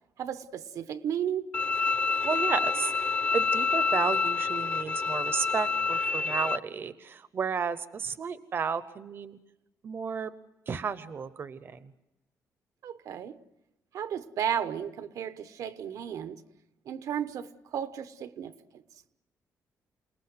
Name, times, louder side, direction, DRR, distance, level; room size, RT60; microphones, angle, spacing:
voice 1, 0.2-1.6 12.8-13.4 13.9-16.4 16.8-18.8, right 9 dB, 75° right, 1.1 m, -34 dB
Bowed string instrument, 1.5-6.6, left 4 dB, 25° left, 0.8 m, -27 dB
voice 2, 2.2-9.4 9.8-10.3 10.7-11.9, right 6 dB, 40° right, 0.8 m, -33 dB
28.5 x 19.5 x 8.0 m
cardioid pair, 155°, 6 cm